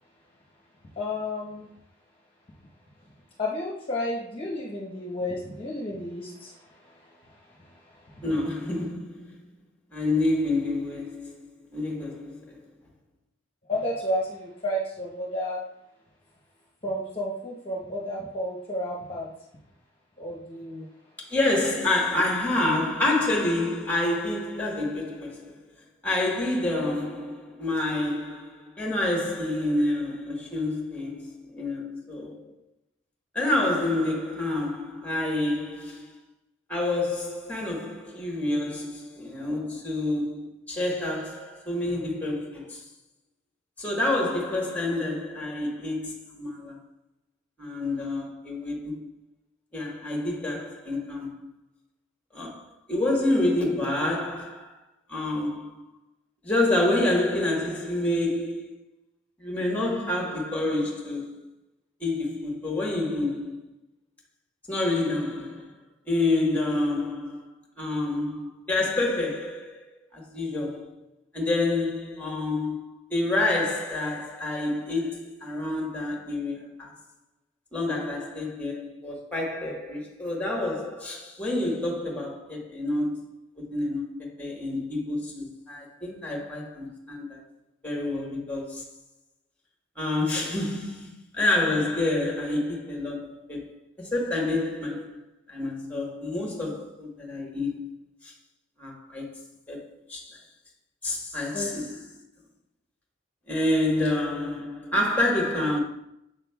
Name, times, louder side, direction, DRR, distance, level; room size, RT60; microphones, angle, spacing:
voice 1, 1.0-1.7 3.4-6.5 6.8-6.9 7.9-8.2 13.7-15.6 16.8-19.3 20.2-20.9 101.5-101.7, left 1 dB, 25° left, 1.0 m, -31 dB
voice 2, 8.2-9.4 9.9-11.5 11.7-12.6 21.2-25.6 26.0-32.6 33.3-36.2 36.7-42.8 43.8-46.8 47.6-49.1 49.7-51.5 52.3-54.8 55.1-55.9 56.4-58.8 59.4-61.5 62.0-63.6 64.7-65.8 66.1-67.5 67.8-69.8 70.1-70.9 71.3-77.0 77.7-87.4 87.8-88.9 90.0-95.2 95.5-97.9 98.2-98.3 98.8-99.3 99.7-100.4 101.0-102.1 103.5-105.8, left 2 dB, 10° left, 1.2 m, -28 dB
7.3 x 6.0 x 2.3 m
head